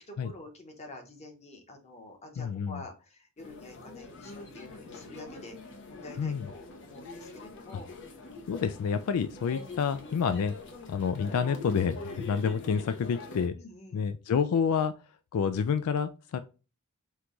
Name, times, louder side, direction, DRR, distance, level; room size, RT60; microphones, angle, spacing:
voice 1, 0.1-7.9 9.2-9.7 13.5-14.1, left 2 dB, 30° left, 3 dB, 1.0 m, -48 dB
voice 2, 2.4-2.8 6.2-6.5 8.5-10.5 10.9-13.5 13.9-14.9 15.3-16.4, left 6 dB, 75° left, 11 dB, 0.3 m, -28 dB
sound 1, 3.4-13.5, left 3 dB, 55° left, 0.9 m, -44 dB
4.6 x 2.3 x 3.8 m, 0.32 s
head